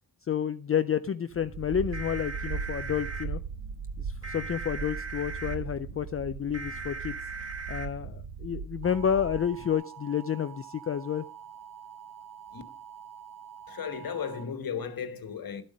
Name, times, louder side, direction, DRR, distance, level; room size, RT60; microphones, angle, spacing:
voice 1, 0.3-3.4 4.0-7.1 7.7-11.2, left 8 dB, 35° left, 0.5 m, -30 dB
sound 1, 1.3-9.7, right 6 dB, 75° right, 1.5 m, -38 dB
sound 2, 1.9-3.2 4.2-5.6 6.5-7.9 8.8-14.4, right 4 dB, 35° right, 2.7 m, -41 dB
voice 2, 13.7-15.6, left 7 dB, 60° left, 1.5 m, -35 dB
12.5 x 8.3 x 5.1 m
wide cardioid pair, 135°, 40 cm